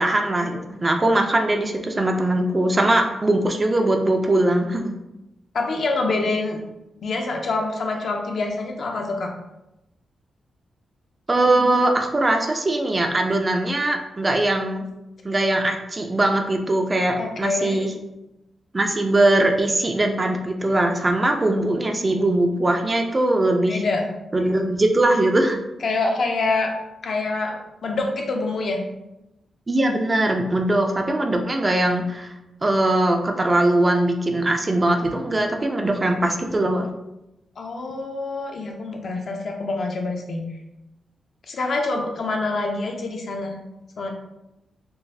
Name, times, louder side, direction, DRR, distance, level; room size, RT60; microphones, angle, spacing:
voice 1, 0.0-4.9 11.3-14.8 15.2-17.9 18.7-23.8 24.3-25.6 29.7-32.3 32.6-36.9, right 1 dB, 25° right, 3 dB, 0.3 m, -21 dB
voice 2, 5.5-6.6 7.0-9.3 17.2-17.9 23.7-24.1 25.8-26.7 27.0-28.8 37.6-40.4 41.5-43.6 44.0-44.1, left 3 dB, 55° left, 2 dB, 0.6 m, -26 dB
3.8 x 2.5 x 2.6 m, 0.92 s
wide cardioid pair, 135°, 0 cm